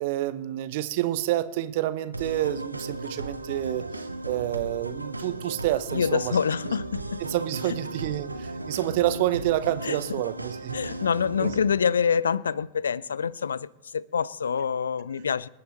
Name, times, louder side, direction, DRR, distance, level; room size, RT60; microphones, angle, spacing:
voice 1, 0.0-6.4 7.2-10.8 11.4-11.5, right 14 dB, 50° right, 0.8 m, -28 dB
sound 1, 2.1-11.7, right 2 dB, 85° right, 0.9 m, -36 dB
voice 2, 5.9-7.2 7.6-7.8 9.8-10.0 10.7-15.5, left 6 dB, 70° left, 0.4 m, -26 dB
26.5 x 9.7 x 3.1 m
figure-of-eight pair, 90°, 0 cm